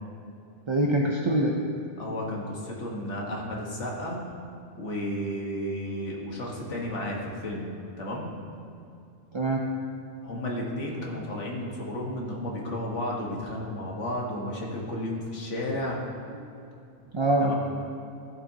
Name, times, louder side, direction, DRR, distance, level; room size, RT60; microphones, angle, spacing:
voice 1, 0.7-1.6 9.3-9.7 17.1-17.5, right 1 dB, 40° right, -1 dB, 0.4 m, -24 dB
voice 2, 2.0-4.2 4.8-7.7 8.0-8.3 10.2-16.0 17.4-17.5, left 1 dB, 70° left, -2 dB, 1.7 m, -33 dB
14.0 x 7.6 x 2.8 m, 2.6 s
omnidirectional pair, 1.3 m